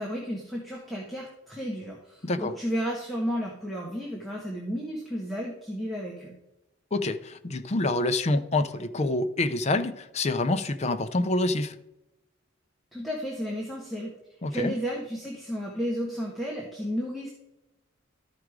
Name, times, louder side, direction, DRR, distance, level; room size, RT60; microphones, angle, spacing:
voice 1, 0.0-6.3 12.9-14.1 14.5-17.3, equal, ahead, 1.3 m, -32 dB
voice 2, 2.2-2.5 6.9-11.7 14.4-14.7, left 2 dB, 35° left, 0.5 m, -27 dB
12.5 x 4.9 x 4.7 m
head